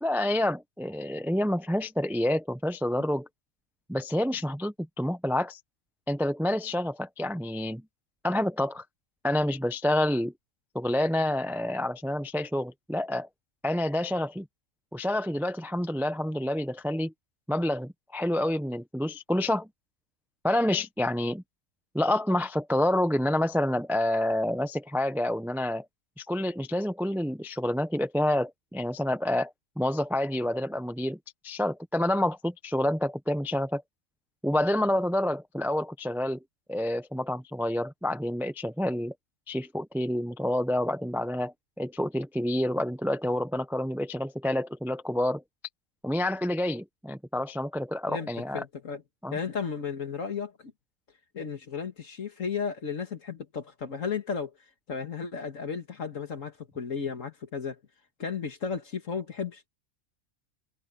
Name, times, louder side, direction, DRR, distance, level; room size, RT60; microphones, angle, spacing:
voice 1, 0.0-3.3 3.9-5.6 6.1-7.8 8.2-8.8 9.2-10.3 10.7-13.3 13.6-14.4 14.9-17.1 17.5-19.7 20.4-21.4 21.9-25.8 26.2-31.2 31.4-33.8 34.4-36.4 36.7-39.1 39.5-45.4 46.0-48.6 49.2-49.4, left 1 dB, ahead, 0.6 m, -28 dB
voice 2, 48.1-49.0 49.3-50.7 51.3-54.5 54.9-57.8 58.2-59.7, left 6 dB, 70° left, 2.1 m, -34 dB
omnidirectional pair, 1.4 m